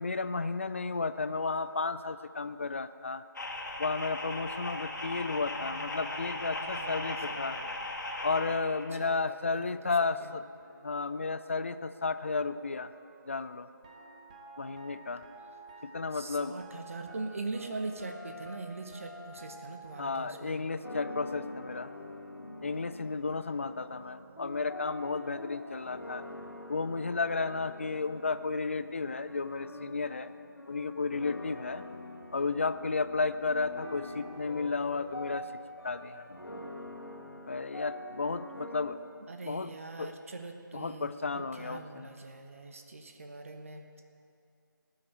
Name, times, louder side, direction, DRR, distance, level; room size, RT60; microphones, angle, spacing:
voice 1, 0.0-3.2 3.8-7.6 8.2-10.5 10.8-12.9 13.3-13.7 14.6-15.2 15.8-16.6 20.0-21.9 22.6-26.2 26.7-30.3 30.7-31.8 32.3-35.5 35.8-36.4 37.5-39.0 39.5-39.7 40.0-40.1 40.7-42.1, left 4 dB, 35° left, 12 dB, 0.4 m, -33 dB
sound 1, 3.3-8.6, left 2 dB, 55° left, 2.1 m, -37 dB
voice 2, 5.5-7.8 8.9-10.3 16.1-20.6 39.3-43.8, right 3 dB, 40° right, 5 dB, 1.0 m, -42 dB
sound 2, 10.6-23.3 23.5-28.3, right 1 dB, 15° right, 1.0 m, -53 dB
sound 3, 20.8-38.9, left 1 dB, 80° left, 2.3 m, -45 dB
18.5 x 6.4 x 8.8 m, 2.4 s
figure-of-eight pair, 160°, 12 cm